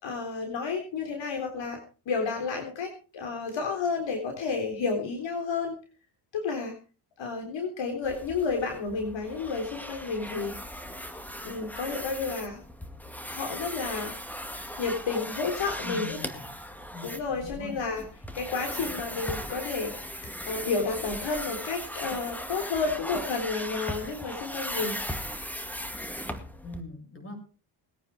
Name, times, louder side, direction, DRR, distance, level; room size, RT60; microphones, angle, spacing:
voice 1, 0.0-1.8 2.1-5.8 6.3-6.7 7.2-10.6 11.4-12.6 13.3-14.1 14.8-16.2 17.0-18.0 18.3-25.0, left 4 dB, 60° left, 3 dB, 3.7 m, -31 dB
sound 1, 8.0-26.8, equal, 5° left, 2.0 m, -38 dB
voice 2, 15.8-16.5 16.9-17.8 26.6-27.4, left 2 dB, 25° left, 3 dB, 8.0 m, -41 dB
20.5 x 9.2 x 4.8 m, 0.36 s
cardioid pair, 95°, 50 cm